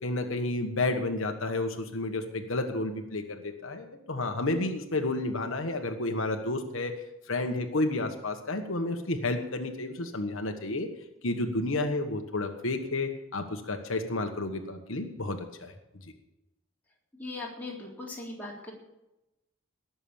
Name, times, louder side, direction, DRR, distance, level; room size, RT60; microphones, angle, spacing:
voice 1, 0.0-6.9 7.3-10.9 11.2-15.7, left 2 dB, 80° left, 4 dB, 1.4 m, -31 dB
voice 2, 17.1-18.7, left 2 dB, 10° left, -4 dB, 3.6 m, -39 dB
18.5 x 7.1 x 7.3 m, 0.93 s
head